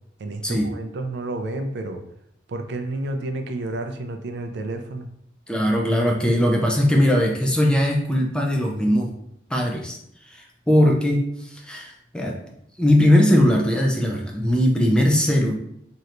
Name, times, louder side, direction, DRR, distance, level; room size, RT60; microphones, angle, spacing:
voice 1, 0.2-2.0 2.5-5.1, right 2 dB, 65° right, 6 dB, 0.4 m, -30 dB
voice 2, 5.5-9.1 9.5-10.0 10.2-12.4 12.8-15.5, left 1 dB, 5° left, 1 dB, 0.4 m, -20 dB
3.2 x 2.9 x 2.5 m, 0.72 s
head